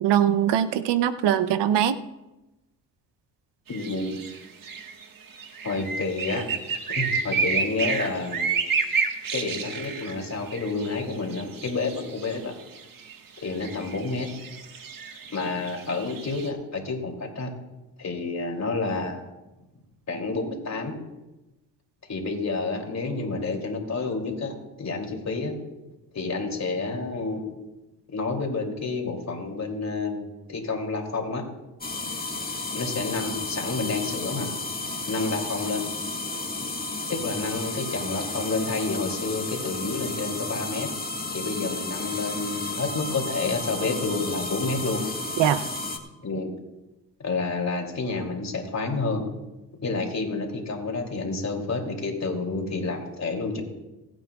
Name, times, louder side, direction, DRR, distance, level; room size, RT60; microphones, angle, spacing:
voice 1, 0.0-2.0 45.4-45.7, right 10 dB, 75° right, 13 dB, 0.8 m, -22 dB
voice 2, 3.7-4.2 5.6-6.4 6.9-8.5 9.3-12.5 13.4-14.3 15.3-17.5 18.0-19.3 20.1-20.9 22.1-25.5 26.1-27.7 28.1-30.2 30.5-31.4 32.7-34.5 35.1-35.8 37.1-40.9 41.3-45.0 46.2-46.5 47.2-49.2 49.8-53.6, left 3 dB, 40° left, 2 dB, 3.0 m, -29 dB
sound 1, 3.7-16.5, right 5 dB, 50° right, 1.6 m, -31 dB
sound 2, 31.8-46.0, left 3 dB, 20° left, 1.8 m, -32 dB
24.5 x 9.1 x 2.4 m, 1.0 s
supercardioid pair, 70°, 42 cm